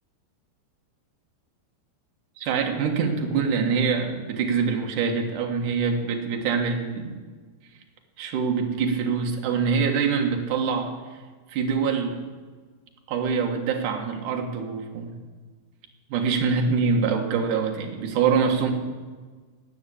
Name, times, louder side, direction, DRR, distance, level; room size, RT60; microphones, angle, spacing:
voice 1, 2.4-7.2 8.2-10.9 11.5-12.2 13.1-15.1 16.1-18.7, right 5 dB, 60° right, 3 dB, 2.6 m, -24 dB
18.0 x 6.1 x 8.4 m, 1.4 s
omnidirectional pair, 4.7 m